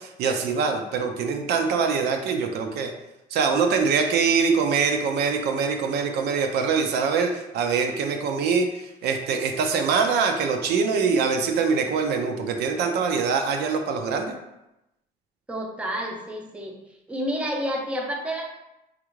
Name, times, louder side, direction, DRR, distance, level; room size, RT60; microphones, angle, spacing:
voice 1, 0.0-2.9 3.3-14.4, right 5 dB, 75° right, 4 dB, 0.5 m, -24 dB
voice 2, 15.5-16.8 17.1-18.5, equal, 5° right, 0 dB, 0.6 m, -29 dB
3.3 x 2.5 x 3.0 m, 0.91 s
cardioid pair, 110°, 17 cm